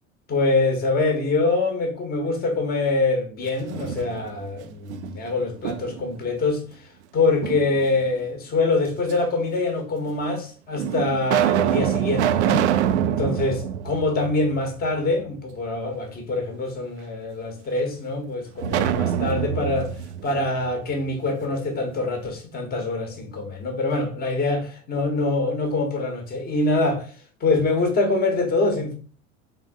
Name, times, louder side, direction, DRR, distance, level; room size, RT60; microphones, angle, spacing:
voice 1, 0.3-6.6 7.1-12.7 13.0-19.9 20.2-27.1 27.4-28.9, left 3 dB, 25° left, 1.1 m, -24 dB
sound 1, 3.5-4.5 4.9-6.2 7.4-8.2 9.1-9.2 10.1-10.2 10.8-14.9 15.2-15.3 18.6-21.4, right 10 dB, 60° right, 0.5 m, -25 dB
3.8 x 3.3 x 3.8 m
figure-of-eight pair, 75°, 40 cm